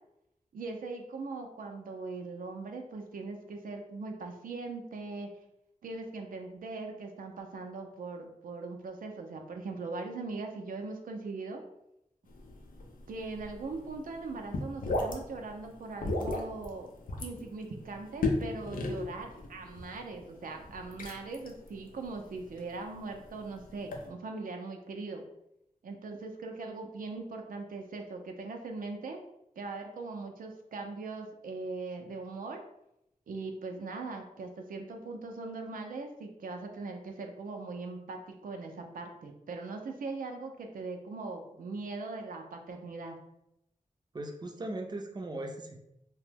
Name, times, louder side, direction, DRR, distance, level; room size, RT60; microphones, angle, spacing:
voice 1, 0.5-5.3 5.8-11.6 13.1-16.9 17.2-25.2 25.8-29.2 29.6-32.6 33.3-43.2, right 3 dB, 85° right, 3 dB, 0.4 m, -40 dB
sound 1, 12.3-24.1, left 2 dB, 90° left, 0.5 m, -37 dB
voice 2, 44.1-45.8, right 1 dB, 30° right, 3 dB, 0.4 m, -38 dB
2.9 x 2.1 x 3.3 m, 0.82 s
wide cardioid pair, 65°, 14 cm